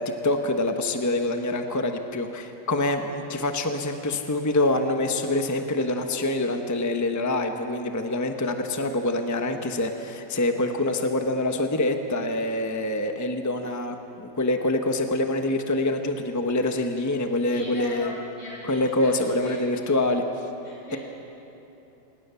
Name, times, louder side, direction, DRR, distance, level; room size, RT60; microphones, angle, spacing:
voice 1, 0.0-18.1 18.7-20.2, left 2 dB, 10° left, 5 dB, 1.0 m, -25 dB
voice 2, 17.5-19.9 20.6-21.0, equal, 75° left, -4 dB, 7.9 m, -39 dB
26.5 x 20.5 x 7.0 m, 3.0 s
omnidirectional pair, 1.8 m